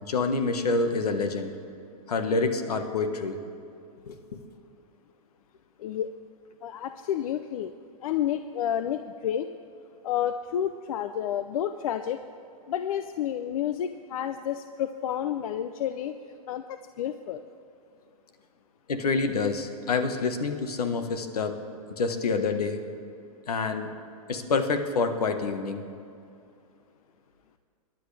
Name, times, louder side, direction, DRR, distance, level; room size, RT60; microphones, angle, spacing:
voice 1, 0.0-1.5 2.1-3.4 4.1-4.2 18.9-21.5 21.9-22.8 23.5-23.9 24.3-25.8, left 4 dB, 85° left, 7 dB, 1.4 m, -27 dB
voice 2, 5.8-6.1 6.6-7.7 8.0-9.5 10.0-12.2 12.7-16.1 16.5-17.4, left 10 dB, 70° left, 10 dB, 0.6 m, -30 dB
26.5 x 10.5 x 3.4 m, 2.6 s
hypercardioid pair, 120°, 19 cm